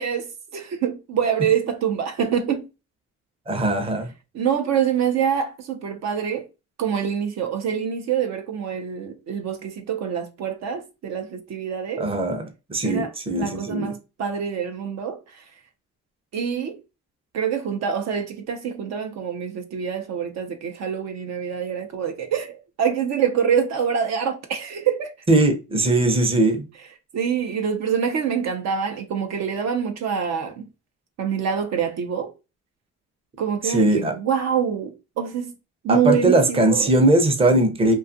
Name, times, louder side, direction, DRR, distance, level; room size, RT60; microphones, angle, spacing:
voice 1, 0.0-2.7 4.3-6.4 6.8-12.1 12.8-15.4 16.3-16.8 17.3-25.1 27.1-30.6 31.2-32.3 33.4-35.5 35.8-36.9, right 7 dB, 60° right, 0.5 m, -25 dB
voice 2, 3.5-4.1 12.0-12.4 12.7-13.9 25.3-26.7 33.6-34.1 35.9-37.9, right 2 dB, 20° right, 0.6 m, -20 dB
2.5 x 2.3 x 2.5 m
cardioid pair, 90°, 30 cm